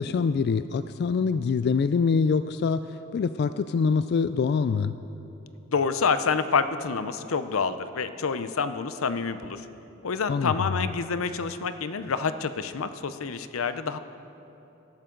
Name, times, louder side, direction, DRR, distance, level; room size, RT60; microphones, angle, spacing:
voice 1, 0.0-4.9 10.3-10.8, left 5 dB, 50° left, 12 dB, 0.3 m, -25 dB
voice 2, 5.7-9.7 10.0-14.0, left 5 dB, 85° left, 11 dB, 0.6 m, -28 dB
19.5 x 12.0 x 3.8 m, 3.0 s
head